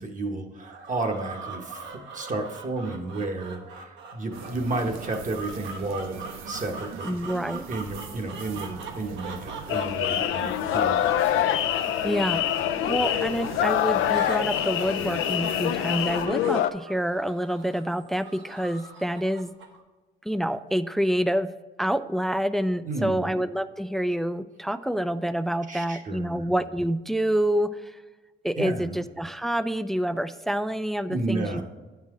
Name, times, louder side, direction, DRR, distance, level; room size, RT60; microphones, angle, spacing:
voice 1, 0.0-1.9 2.1-7.1 7.7-11.3 22.8-23.3 25.7-26.4 28.6-29.0 31.1-31.6, right 2 dB, 40° right, 3 dB, 1.1 m, -32 dB
sound 1, 0.6-19.8, right 4 dB, 70° right, 1.1 m, -42 dB
sound 2, 4.3-16.3, right 6 dB, 85° right, 0.7 m, -41 dB
voice 2, 7.0-7.7 12.0-12.4 12.9-19.5 20.2-21.5 21.8-28.0 28.4-31.6, equal, ahead, 13 dB, 0.3 m, -27 dB
sound 3, 9.7-16.7, left 11 dB, 85° left, 0.4 m, -25 dB
8.6 x 5.7 x 3.6 m, 1.2 s
cardioid pair, 90°, 20 cm